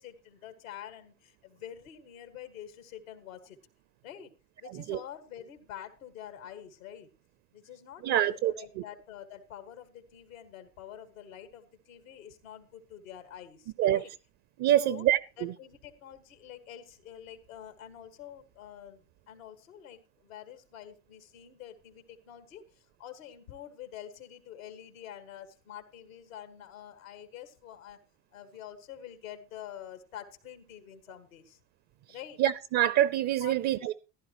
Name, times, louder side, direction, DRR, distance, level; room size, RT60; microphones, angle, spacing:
voice 1, 0.0-3.6 4.0-4.3 4.6-7.1 7.5-14.1 14.7-15.1 15.4-28.0 28.3-31.6 32.1-32.4 33.4-33.9, left 10 dB, 85° left, 1.8 m, -47 dB
voice 2, 4.6-5.0 8.0-8.5 13.8-14.0 14.6-15.5 32.4-33.9, right 12 dB, 45° right, 0.6 m, -26 dB
15.0 x 11.0 x 3.0 m
hypercardioid pair, 90°, 39 cm